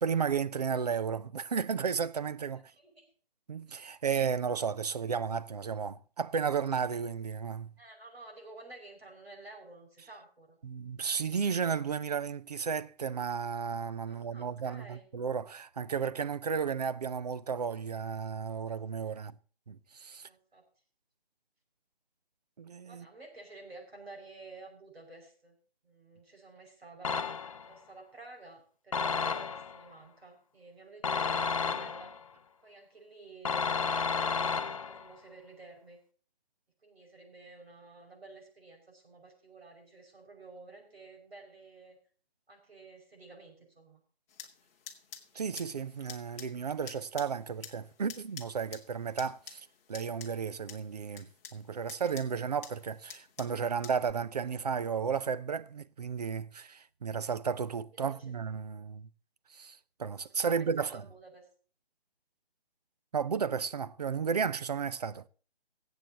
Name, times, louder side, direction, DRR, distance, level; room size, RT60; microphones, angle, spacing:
voice 1, 0.0-2.7 3.5-7.7 10.6-19.4 19.7-20.3 22.6-23.1 45.3-59.1 59.5-61.0 63.1-65.3, right 6 dB, 40° right, 0.5 m, -33 dB
voice 2, 2.8-3.1 7.8-10.6 14.1-15.1 19.1-19.2 20.2-20.6 22.9-25.6 25.8-27.2 27.7-32.1 32.6-36.0 36.8-42.0 42.5-44.0 58.0-58.3 60.5-61.5, right 3 dB, 75° right, 5.6 m, -51 dB
sound 1, 27.0-27.7 28.9-29.8 31.0-32.2 33.4-35.1, left 5 dB, 35° left, 0.5 m, -32 dB
sound 2, 44.3-54.1, left 7 dB, 15° left, 0.9 m, -50 dB
23.5 x 7.9 x 2.8 m
figure-of-eight pair, 150°, 31 cm